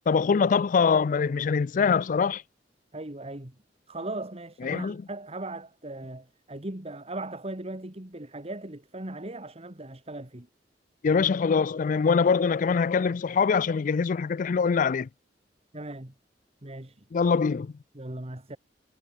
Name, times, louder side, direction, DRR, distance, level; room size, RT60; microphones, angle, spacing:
voice 1, 0.1-2.4 4.6-5.0 11.0-15.1 17.1-17.7, left 5 dB, 50° left, 0.4 m, -23 dB
voice 2, 2.9-3.5 3.9-10.5 15.7-16.1 16.6-17.0 17.9-18.6, right 2 dB, 35° right, 2.3 m, -38 dB
head